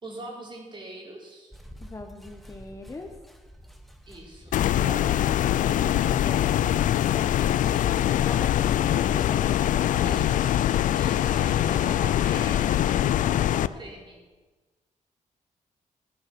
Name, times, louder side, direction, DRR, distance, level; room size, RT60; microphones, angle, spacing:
voice 1, 0.0-1.5 4.1-5.2 7.4-7.9 10.0-14.2, right 1 dB, 35° right, -1 dB, 4.0 m, -42 dB
sound 1, 1.5-7.9, equal, ahead, 1.1 m, -45 dB
voice 2, 1.8-3.1 5.9-6.6 8.1-10.1, left 2 dB, 25° left, 4 dB, 1.1 m, -40 dB
sound 2, 4.5-13.7, left 11 dB, 90° left, 0.4 m, -23 dB
14.5 x 9.8 x 6.1 m, 1.3 s
cardioid pair, 110°, 13 cm